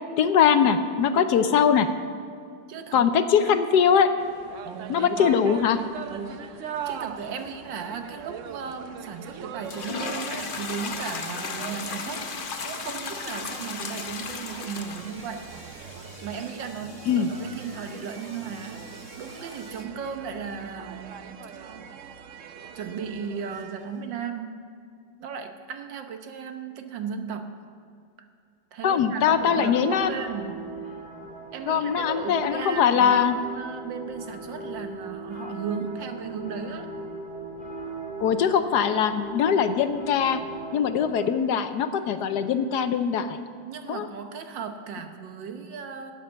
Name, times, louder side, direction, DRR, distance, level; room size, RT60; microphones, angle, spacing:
voice 1, 0.2-1.9 2.9-4.1 4.9-5.8 17.1-17.3 28.8-30.1 31.7-33.4 38.2-40.4 40.7-43.4 43.9-44.1, left 7 dB, 70° left, 9 dB, 1.2 m, -21 dB
voice 2, 1.1-1.6 2.7-3.1 3.4-3.6 4.6-5.3 6.1-15.5 16.2-22.0 22.7-24.6 25.2-27.5 28.7-31.0 31.5-36.9 43.6-46.1, right 6 dB, 85° right, 6 dB, 1.7 m, -36 dB
sound 1, 4.2-24.0, right 7 dB, 60° right, 0.8 m, -41 dB
sound 2, 9.6-19.8, left 5 dB, 50° left, 0.6 m, -37 dB
sound 3, 29.2-41.3, right 2 dB, 5° right, 1.9 m, -38 dB
12.5 x 8.5 x 8.2 m, 2.3 s
omnidirectional pair, 1.9 m